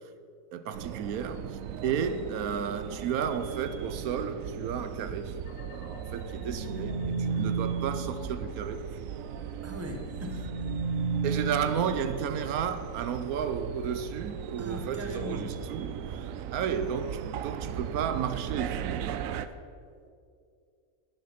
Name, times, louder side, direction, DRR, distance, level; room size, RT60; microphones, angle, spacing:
voice 1, 0.5-5.4 5.7-8.9 11.2-19.3, right 7 dB, 90° right, 11 dB, 1.2 m, -33 dB
sound 1, 0.7-19.5, right 9 dB, 70° right, 0.9 m, -38 dB
sound 2, 5.5-9.4 9.7-13.1, right 4 dB, 85° left, 1.5 m, -34 dB
voice 2, 9.6-10.5 14.6-15.6, left 1 dB, 10° right, 3 dB, 1.0 m, -39 dB
11.5 x 9.1 x 5.8 m, 2.3 s
omnidirectional pair, 1.5 m